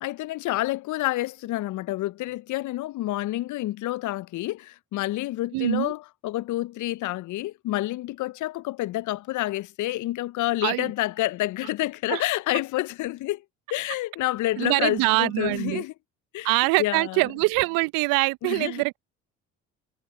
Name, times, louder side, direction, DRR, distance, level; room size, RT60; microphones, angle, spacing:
voice 1, 0.0-13.4 13.7-15.9 16.3-16.5 16.8-17.2 18.4-18.8, left 16 dB, 50° left, 0.8 m, -28 dB
voice 2, 5.5-5.9 10.6-10.9 12.1-12.2 14.6-15.8 16.4-19.0, right 25 dB, 65° right, 0.8 m, -24 dB
hypercardioid pair, 55°, 38 cm